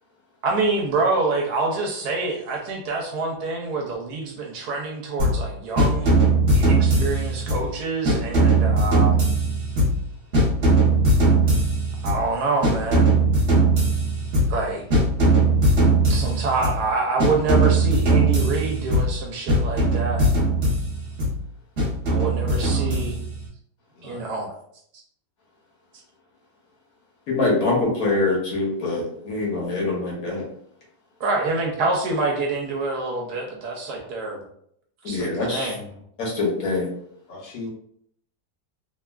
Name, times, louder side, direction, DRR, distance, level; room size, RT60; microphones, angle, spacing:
voice 1, 0.4-6.1 6.5-9.3 12.0-13.1 14.5-14.9 16.1-20.3 22.1-23.2 24.0-24.5 31.2-34.4 35.0-35.9, right 3 dB, 70° right, 0 dB, 1.1 m, -26 dB
sound 1, 5.2-5.5 5.8-7.7 8.0-10.1 10.3-12.3 12.6-14.6 14.9-16.9 17.2-19.2 19.5-21.4 21.8-23.4, right 2 dB, 40° right, 1.1 m, -20 dB
voice 2, 22.5-23.0 23.9-24.5 37.3-37.7, left 2 dB, 80° left, -3 dB, 1.6 m, -39 dB
voice 3, 27.3-30.5 35.0-35.7 36.2-36.9, left 3 dB, 60° left, -3 dB, 1.3 m, -24 dB
3.3 x 2.3 x 2.3 m, 0.67 s
omnidirectional pair, 1.9 m